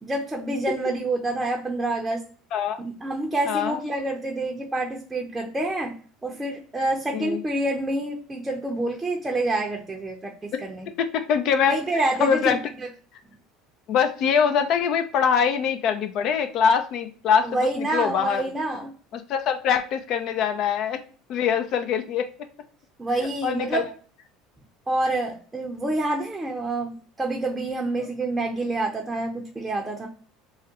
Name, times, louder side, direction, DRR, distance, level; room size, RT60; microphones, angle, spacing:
voice 1, 0.0-2.2 2.8-6.0 6.2-10.9 11.7-12.9 17.4-18.9 23.0-23.9 24.9-30.1, right 2 dB, 15° right, 0 dB, 0.6 m, -27 dB
voice 2, 11.0-11.7 12.2-12.6 13.9-18.4 19.1-21.0 21.3-22.3 23.4-23.8, left 7 dB, 55° left, 8 dB, 0.4 m, -23 dB
3.5 x 2.2 x 2.8 m, 0.42 s
supercardioid pair, 95°, 0 cm